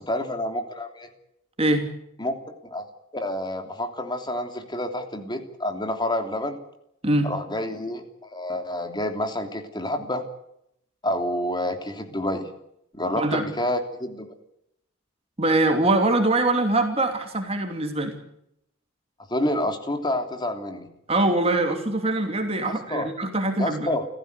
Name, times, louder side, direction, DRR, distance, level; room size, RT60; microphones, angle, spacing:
voice 1, 0.1-1.1 2.2-2.3 2.6-2.9 3.1-6.6 7.2-8.0 8.3-10.2 11.0-12.4 12.9-14.3 19.3-20.9 22.6-23.1 23.6-24.0, left 1 dB, 20° left, 6 dB, 3.1 m, -28 dB
voice 2, 15.4-18.2 21.1-23.9, right 2 dB, 30° right, 5 dB, 2.8 m, -23 dB
29.0 x 15.0 x 8.2 m, 0.78 s
head